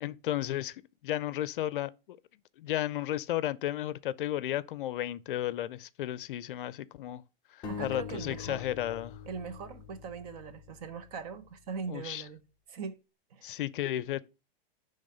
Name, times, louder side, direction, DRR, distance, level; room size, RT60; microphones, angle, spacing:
voice 1, 0.0-2.2 2.6-7.2 7.5-9.2 11.9-12.2 13.4-14.2, left 13 dB, 60° left, 0.5 m, -34 dB
sound 1, 7.6-11.3, left 6 dB, 15° left, 0.7 m, -44 dB
voice 2, 7.7-8.6 9.2-12.4 12.7-13.0 13.3-13.5, right 5 dB, 40° right, 1.0 m, -41 dB
10.0 x 3.5 x 5.5 m
supercardioid pair, 160°, 30 cm